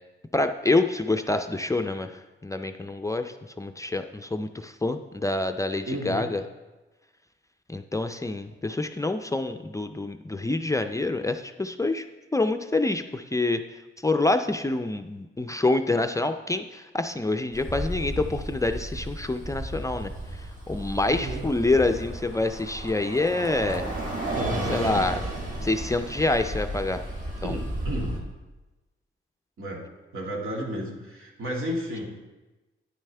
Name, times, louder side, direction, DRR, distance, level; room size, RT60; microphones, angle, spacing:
voice 1, 0.3-6.4 7.7-12.1 12.3-13.6 14.0-20.4 20.7-23.9 24.7-25.3 25.6-27.0 27.4-27.6, left 2 dB, 15° left, 7 dB, 0.4 m, -27 dB
voice 2, 5.9-6.3 21.1-21.5 24.3-25.3 27.4-28.2 29.6-29.8 30.1-32.1, equal, 80° right, -2 dB, 2.0 m, -32 dB
Bus, 17.5-28.2, right 1 dB, 40° right, 1.6 m, -33 dB
9.8 x 8.9 x 3.3 m, 1.1 s
wide cardioid pair, 125°, 21 cm